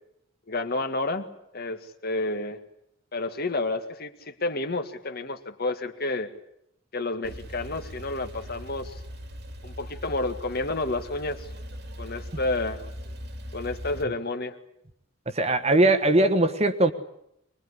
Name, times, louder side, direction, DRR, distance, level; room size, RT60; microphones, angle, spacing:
voice 1, 0.5-1.3 1.5-2.6 3.1-6.3 6.9-9.0 9.6-11.5 12.0-12.8 13.5-14.6, left 2 dB, 50° left, 7 dB, 1.9 m, -30 dB
Male speech man speaking / Car / Idling, 7.2-14.0, equal, 55° right, 2.5 m, -40 dB
voice 2, 15.3-16.9, right 2 dB, 30° right, 9 dB, 1.5 m, -20 dB
24.0 x 21.0 x 9.9 m, 0.77 s
head